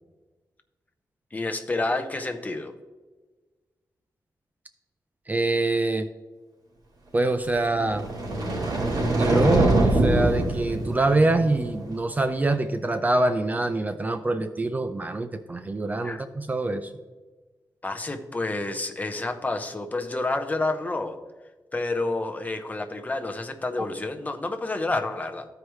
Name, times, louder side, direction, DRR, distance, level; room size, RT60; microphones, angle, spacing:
voice 1, 1.3-2.7 16.0-16.2 17.8-21.2 21.7-25.5, left 2 dB, 20° left, 6 dB, 0.7 m, -29 dB
voice 2, 5.3-6.1 7.1-8.0 9.1-16.9, right 2 dB, 25° right, 9 dB, 0.4 m, -25 dB
sound 1, 7.6-11.9, right 2 dB, 75° right, 2.6 m, -24 dB
14.0 x 4.8 x 3.1 m, 1.3 s
wide cardioid pair, 155°, 7 cm